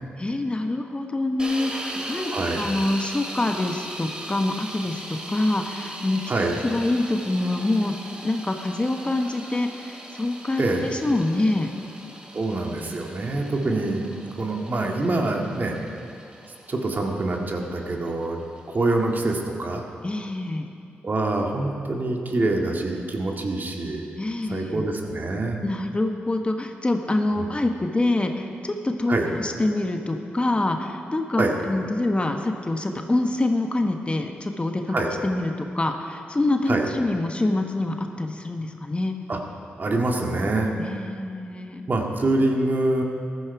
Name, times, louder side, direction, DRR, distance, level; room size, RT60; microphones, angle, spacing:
voice 1, 0.2-6.2 6.6-8.0 8.2-11.7 20.0-20.7 24.2-24.8 25.6-35.0 35.2-39.1 40.8-41.8, left 2 dB, 25° left, 4 dB, 1.2 m, -25 dB
sound 1, 1.4-19.3, right 1 dB, 20° right, 2.4 m, -39 dB
voice 2, 2.0-2.7 6.3-6.6 10.6-10.9 12.3-14.0 14.4-15.8 16.7-18.4 18.7-19.9 21.0-24.1 24.4-25.6 27.4-27.5 29.1-29.3 31.4-31.5 34.9-35.1 36.7-36.9 39.3-39.4 39.8-40.7 41.9-43.0, right 2 dB, 50° right, 1 dB, 2.0 m, -25 dB
14.5 x 11.5 x 4.8 m, 2.4 s
supercardioid pair, 50°, 4 cm